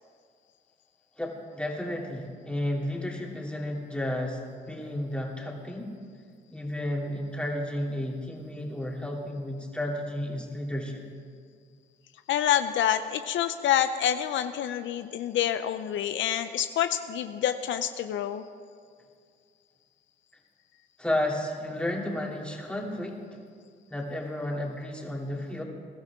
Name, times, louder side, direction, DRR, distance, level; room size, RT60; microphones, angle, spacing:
voice 1, 1.2-5.9 6.5-11.0 21.0-23.2 23.9-25.6, left 1 dB, 5° left, -2 dB, 2.8 m, -32 dB
voice 2, 12.3-18.4, left 10 dB, 75° left, 10 dB, 0.6 m, -27 dB
21.5 x 13.0 x 3.6 m, 2.1 s
cardioid pair, 90°, 20 cm